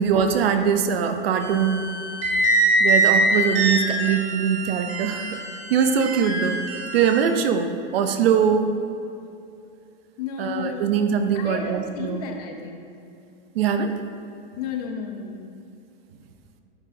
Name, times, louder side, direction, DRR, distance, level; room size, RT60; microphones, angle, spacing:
voice 1, 0.0-1.9 2.8-5.4 5.7-6.7 6.9-8.7 10.4-12.2 13.5-14.0, right 7 dB, 75° right, 7 dB, 0.6 m, -22 dB
sound 1, 1.4-7.2, right 2 dB, 50° right, 1.5 m, -23 dB
voice 2, 10.2-11.0 11.3-12.8 14.6-15.6, left 6 dB, 40° left, 4 dB, 0.6 m, -33 dB
10.5 x 4.4 x 2.7 m, 2.6 s
supercardioid pair, 170°, 30 cm